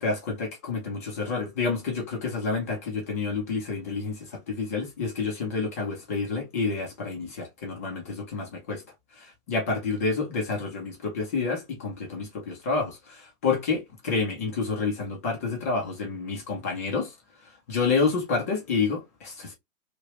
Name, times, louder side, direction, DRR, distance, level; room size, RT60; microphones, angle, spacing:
voice 1, 0.0-8.8 9.1-17.1 17.7-19.5, left 4 dB, 10° left, 0.3 m, -29 dB
3.1 x 2.8 x 2.8 m
hypercardioid pair, 130°, 44 cm